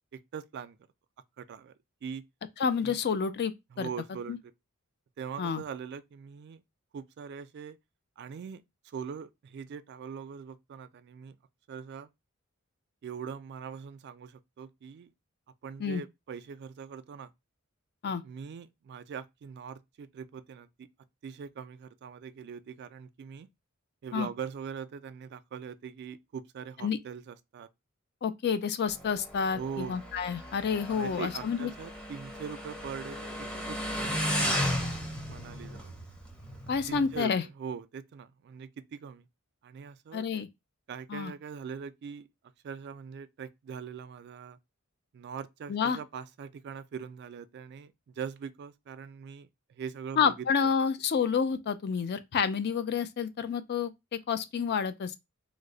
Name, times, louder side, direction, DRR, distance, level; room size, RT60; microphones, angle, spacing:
voice 1, 0.1-0.8 1.4-1.7 2.0-2.2 2.8-3.0 3.7-4.5 5.2-6.6 6.9-7.8 8.2-11.4 11.7-12.1 13.0-15.1 15.6-17.3 18.2-20.9 21.2-23.5 24.0-27.7 29.5-30.0 31.0-35.9 36.9-39.3 39.6-40.3 40.9-42.3 42.6-44.6 45.1-50.7, right 6 dB, 55° right, 0.3 m, -42 dB
voice 2, 2.6-3.9 4.3-4.4 5.4-5.6 15.8-16.0 18.0-18.2 24.1-24.3 26.8-27.0 28.2-31.7 36.7-37.4 40.1-40.5 41.1-41.3 45.7-46.0 50.2-55.1, left 6 dB, 50° left, 0.4 m, -29 dB
Motorcycle, 28.9-37.2, equal, 5° left, 0.6 m, -35 dB
3.1 x 2.0 x 3.8 m
head